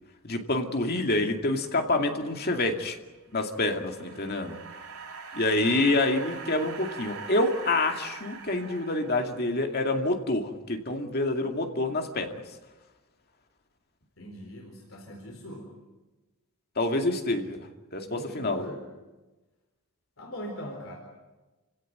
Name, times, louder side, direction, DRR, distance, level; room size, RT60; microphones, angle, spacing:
voice 1, 0.2-3.0 3.3-4.6 5.3-12.3 16.8-17.6 17.9-18.7, left 2 dB, 45° left, 4 dB, 2.4 m, -27 dB
sound 1, 3.4-9.7, right 5 dB, 90° right, 4.4 m, -43 dB
voice 2, 14.2-15.7 18.0-18.8 20.2-21.0, equal, 65° left, 1 dB, 4.3 m, -40 dB
29.5 x 17.0 x 9.4 m, 1.2 s
head